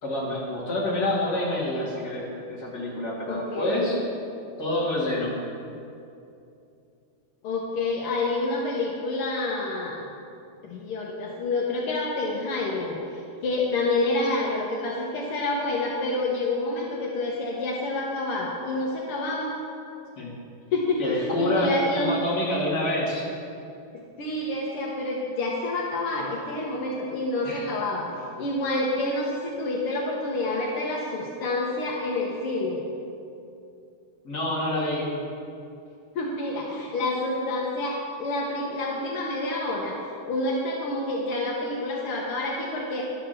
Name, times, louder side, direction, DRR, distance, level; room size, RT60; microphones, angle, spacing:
voice 1, 0.0-4.0 4.6-5.4 20.2-20.3 21.0-23.3 27.4-27.7 34.2-35.1, left 1 dB, 30° left, -6 dB, 2.5 m, -27 dB
voice 2, 3.3-4.0 7.4-10.0 10.6-19.5 20.7-22.2 23.9-28.1 28.4-32.8 36.1-43.0, left 2 dB, 70° left, -2 dB, 1.3 m, -28 dB
11.5 x 5.9 x 6.7 m, 2.6 s
omnidirectional pair, 3.7 m